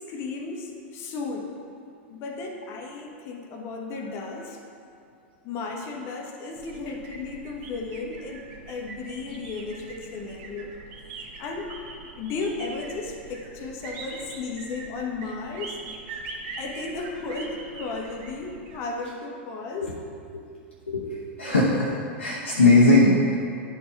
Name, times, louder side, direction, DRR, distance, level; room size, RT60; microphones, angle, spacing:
voice 1, 0.0-1.6 2.1-4.7 5.4-10.8 11.4-11.7 12.2-15.8 16.6-19.9, left 3 dB, 40° left, 3 dB, 0.9 m, -34 dB
sound 1, 6.5-18.8, right 3 dB, 50° right, 1.0 m, -42 dB
voice 2, 20.9-23.4, left 2 dB, 85° left, -6 dB, 0.9 m, -20 dB
10.5 x 4.4 x 3.3 m, 2.4 s
figure-of-eight pair, 95°, 6 cm